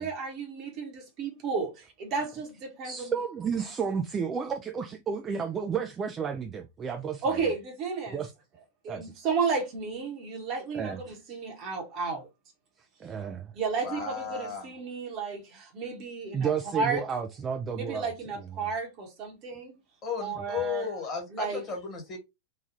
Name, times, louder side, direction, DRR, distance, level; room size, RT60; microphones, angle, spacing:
voice 1, 0.0-1.7 2.0-3.1 7.2-8.2 8.8-12.3 13.5-17.0 17.8-19.7 20.2-20.9 21.3-21.6, right 4 dB, 40° right, 1.0 m, -32 dB
voice 2, 2.8-7.5 8.1-8.3 8.9-9.1 10.7-11.2 13.0-13.5 16.3-18.1 18.4-18.7, right 6 dB, 25° right, 0.3 m, -32 dB
voice 3, 13.8-14.7 20.0-22.2, left 6 dB, 30° left, 1.5 m, -34 dB
3.1 x 2.3 x 2.5 m
figure-of-eight pair, 90°, 0 cm